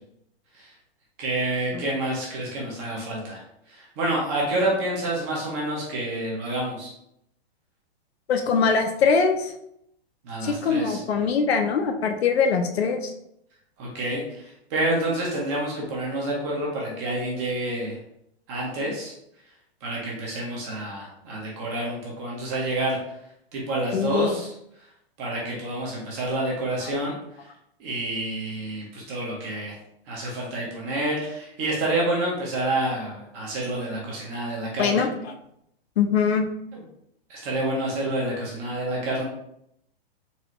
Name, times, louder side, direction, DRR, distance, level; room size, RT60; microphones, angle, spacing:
voice 1, 1.2-3.4 3.7-6.9 10.2-11.0 13.8-18.0 18.5-19.1 19.8-23.0 23.5-24.5 25.2-27.1 27.8-29.7 30.1-35.1 36.7-36.8 37.3-39.2, right 1 dB, 15° right, -3 dB, 0.4 m, -28 dB
voice 2, 8.3-9.5 10.4-13.1 23.9-24.4 34.8-35.3 36.0-36.5, left 5 dB, 85° left, 5 dB, 0.7 m, -22 dB
4.0 x 2.4 x 2.9 m, 0.76 s
hypercardioid pair, 165°, 31 cm